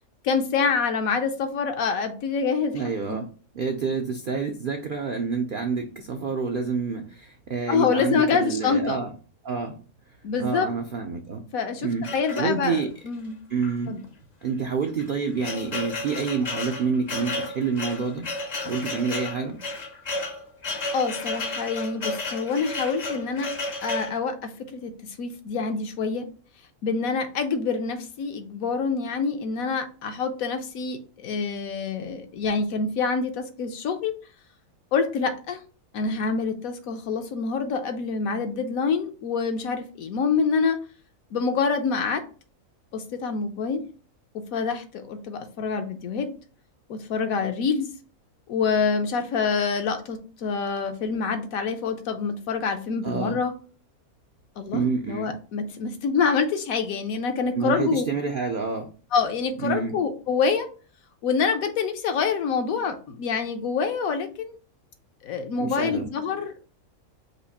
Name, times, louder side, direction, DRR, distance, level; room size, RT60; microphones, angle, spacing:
voice 1, 0.2-2.8 3.1-3.2 7.7-9.1 10.2-10.7 11.5-13.4 13.9-14.0 20.9-23.5 23.8-24.9 25.2-26.3 26.8-34.1 34.9-35.6 35.9-40.8 41.3-42.2 42.9-43.8 44.5-46.3 46.9-47.9 48.5-53.5 54.6-58.0 59.1-60.7 61.2-64.5 65.2-66.6, left 5 dB, 70° left, 6 dB, 1.1 m, -26 dB
voice 2, 2.7-3.3 3.5-9.1 9.4-9.7 10.4-11.4 11.8-12.1 12.3-12.9 13.5-13.9 14.4-18.3 18.6-19.6 53.0-53.4 54.7-55.3 57.5-58.9 59.6-59.9 65.6-66.1, right 5 dB, 65° right, 3 dB, 0.5 m, -28 dB
sound 1, 12.0-12.9 13.6-13.8 14.0-14.1 14.8-24.2, left 2 dB, 40° left, 0.6 m, -32 dB
4.8 x 2.5 x 4.1 m, 0.37 s
omnidirectional pair, 1.6 m